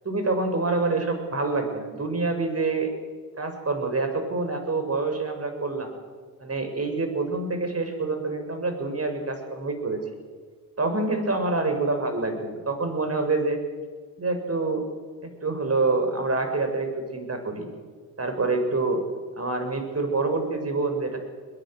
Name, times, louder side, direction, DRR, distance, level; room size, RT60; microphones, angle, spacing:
voice 1, 0.0-2.9 3.4-5.9 6.4-10.0 10.8-13.6 14.2-14.9 15.2-17.7 18.2-19.0 19.4-21.2, right 3 dB, 30° right, 6 dB, 6.6 m, -26 dB
22.5 x 21.5 x 8.0 m, 1.5 s
hypercardioid pair, 55°, 50 cm